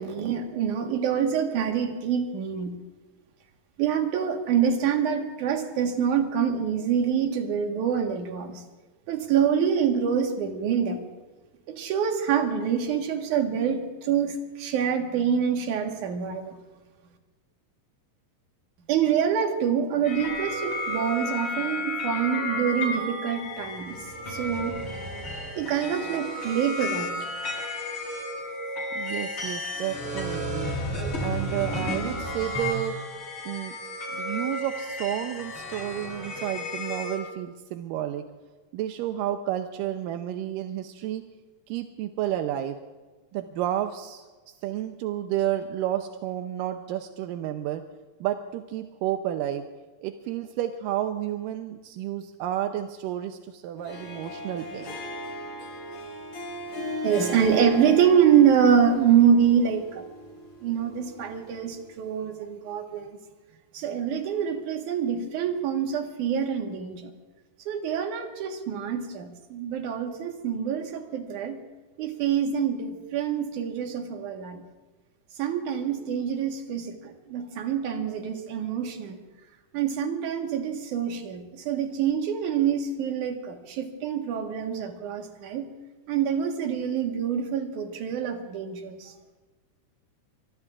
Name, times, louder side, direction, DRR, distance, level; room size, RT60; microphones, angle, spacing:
voice 1, 0.0-2.7 3.8-8.6 9.1-11.0 11.7-16.6 18.9-24.0 24.3-24.8 25.6-27.1 57.0-60.0 60.6-63.2 63.7-67.1 67.7-71.6 72.0-74.6 75.4-79.2 79.7-85.7 86.1-89.1, right 8 dB, 70° right, 3 dB, 2.9 m, -25 dB
sound 1, 20.0-37.2, left 1 dB, 40° left, 7.8 m, -32 dB
voice 2, 28.9-30.7 31.2-33.0 33.5-33.8 34.1-38.3 38.7-41.2 41.7-42.8 43.3-44.2 44.6-47.8 48.2-49.6 50.0-54.9, right 12 dB, 85° right, 6 dB, 2.3 m, -31 dB
Harp, 53.8-62.0, left 1 dB, 75° left, 4.4 m, -38 dB
24.5 x 23.0 x 2.5 m, 1.3 s
omnidirectional pair, 3.8 m